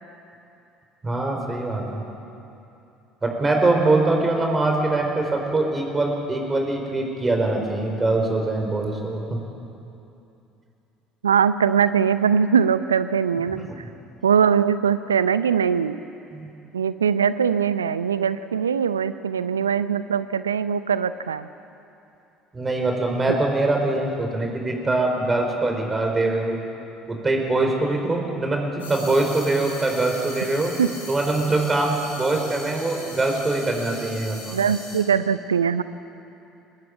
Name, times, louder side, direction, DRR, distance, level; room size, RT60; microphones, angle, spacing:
voice 1, 1.0-2.0 3.2-9.2 13.5-13.8 16.3-16.4 22.5-26.6 27.1-30.7 31.1-34.6, right 2 dB, 20° right, 2 dB, 4.8 m, -23 dB
voice 2, 11.2-13.8 14.2-16.0 16.7-21.5 30.8-30.9 34.5-35.8, right 7 dB, 80° right, 14 dB, 0.6 m, -21 dB
Amazon Jungle - Night, 28.8-35.0, left 2 dB, 80° left, 5.3 m, -39 dB
23.5 x 19.5 x 8.7 m, 2.8 s
figure-of-eight pair, 60°, 0 cm